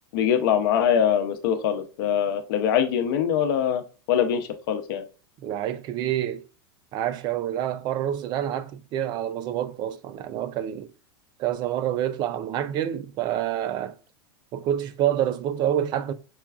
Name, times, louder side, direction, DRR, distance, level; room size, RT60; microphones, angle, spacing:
voice 1, 0.1-3.8 4.1-5.0, left 8 dB, 65° left, 0.7 m, -23 dB
voice 2, 5.4-6.4 6.9-10.9 11.4-14.0 14.5-16.1, right 11 dB, 35° right, 0.3 m, -27 dB
5.6 x 2.3 x 2.3 m
supercardioid pair, 135°, 13 cm